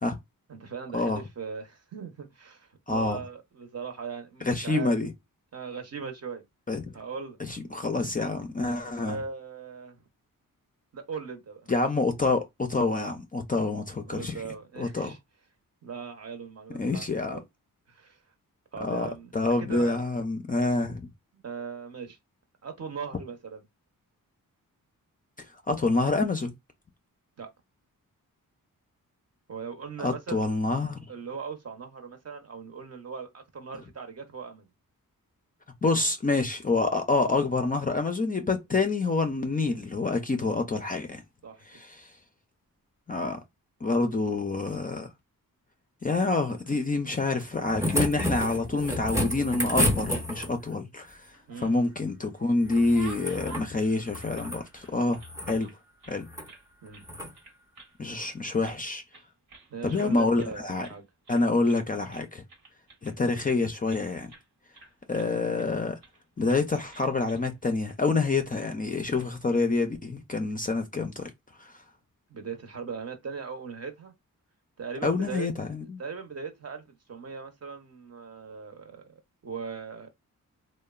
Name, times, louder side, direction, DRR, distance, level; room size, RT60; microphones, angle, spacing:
voice 1, 0.5-5.0 5.5-6.4 6.9-7.4 8.8-10.0 10.9-11.7 14.1-15.2 15.8-17.4 17.9-18.2 18.7-19.3 19.6-20.1 21.4-22.2 22.6-23.6 27.4-27.5 29.5-30.4 31.1-34.7 41.4-41.6 51.5-51.8 54.4-54.5 56.8-57.0 59.7-61.0 72.3-74.1 74.8-75.5 76.0-80.1, right 5 dB, 45° right, 0.7 m, -39 dB
voice 2, 2.9-3.2 4.4-5.1 6.7-6.9 7.4-9.2 11.7-14.4 14.8-15.1 16.7-17.4 18.8-21.1 25.4-26.5 30.0-31.1 35.8-41.2 41.6-42.2 43.1-43.4 43.8-45.1 46.0-55.2 55.5-55.7 56.1-56.3 58.0-59.0 59.8-60.9 61.3-62.4 63.0-64.3 65.1-66.0 66.4-71.3 71.6-71.8 75.0-76.0, left 3 dB, 25° left, 0.4 m, -27 dB
sound 1, 47.4-50.7 52.6-53.7 54.0-54.6 55.2-55.6 56.3-56.5 57.0-57.3 58.7-58.8, equal, 10° right, 0.6 m, -30 dB
sound 2, 51.2-52.0 52.4-55.3 55.6-56.6 56.9-57.1 57.3-57.9 58.2-58.8 59.1-60.1 60.4-60.6 60.8-61.0 61.2-61.8 62.1-64.0 64.3-64.5 64.7-65.7 66.0-66.2 66.5-66.6 66.9-67.5 67.9-68.0 68.9-69.3, right 4 dB, 80° right, 1.1 m, -50 dB
2.9 x 2.0 x 2.3 m
wide cardioid pair, 90°, 35 cm